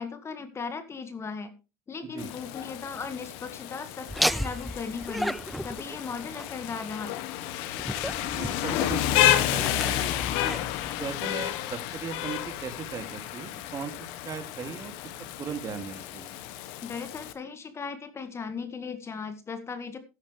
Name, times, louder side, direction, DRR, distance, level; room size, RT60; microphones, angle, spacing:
voice 1, 0.0-1.5 1.9-7.1 16.8-20.0, left 5 dB, 25° left, 10 dB, 1.9 m, -37 dB
Rain, 2.2-17.3, left 13 dB, 65° left, 1.3 m, -31 dB
Laughter, 4.1-11.7, equal, ahead, 0.6 m, -35 dB
voice 2, 8.3-10.5 11.0-14.9 15.4-16.3, right 6 dB, 35° right, 8 dB, 2.6 m, -38 dB
13.0 x 11.0 x 3.3 m, 0.29 s
hypercardioid pair, 90°, 10 cm